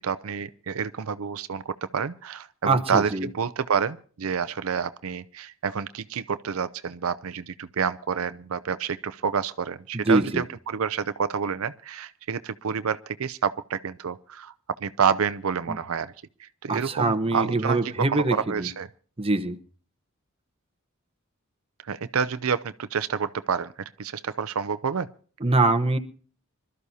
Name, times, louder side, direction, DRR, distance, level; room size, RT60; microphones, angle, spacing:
voice 1, 0.0-14.5 14.8-16.1 16.4-18.9 21.8-23.7 24.0-25.1, right 6 dB, 75° right, 0.6 m, -28 dB
voice 2, 2.6-3.3 9.9-10.4 15.7-15.8 16.7-18.7 19.2-19.6 25.4-26.0, right 2 dB, 25° right, 1.0 m, -23 dB
26.0 x 13.0 x 2.8 m
head